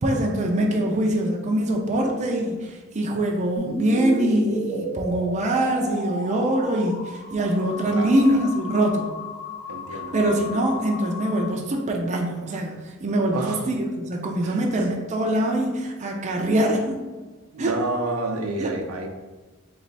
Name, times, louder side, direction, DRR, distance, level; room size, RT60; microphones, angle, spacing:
voice 1, 0.0-9.1 10.1-17.0 17.6-17.7 18.6-18.7, right 1 dB, 35° right, 1 dB, 0.5 m, -23 dB
sound 1, 3.6-11.4, equal, 50° left, 1.0 m, -33 dB
voice 2, 8.0-8.4 9.7-10.5 13.3-13.7 14.4-14.7 17.5-19.1, right 2 dB, 90° right, 3 dB, 0.6 m, -30 dB
3.2 x 3.1 x 4.0 m, 1.3 s
head